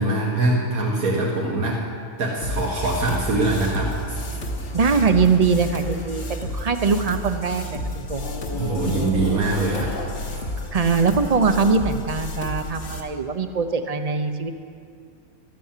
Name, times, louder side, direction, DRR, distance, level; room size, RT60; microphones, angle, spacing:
voice 1, 0.0-1.8 2.2-4.2 8.5-9.9 10.3-10.5, right 2 dB, 85° right, -3 dB, 2.0 m, -23 dB
sound 1, 2.4-13.0, left 1 dB, 50° left, 1.5 m, -31 dB
sound 2, 3.4-7.3 8.1-11.7, left 1 dB, 70° left, 2.5 m, -39 dB
voice 2, 4.7-8.3 10.7-14.5, right 5 dB, 35° right, 8 dB, 0.7 m, -22 dB
13.0 x 11.5 x 7.4 m, 2.2 s
omnidirectional pair, 1.4 m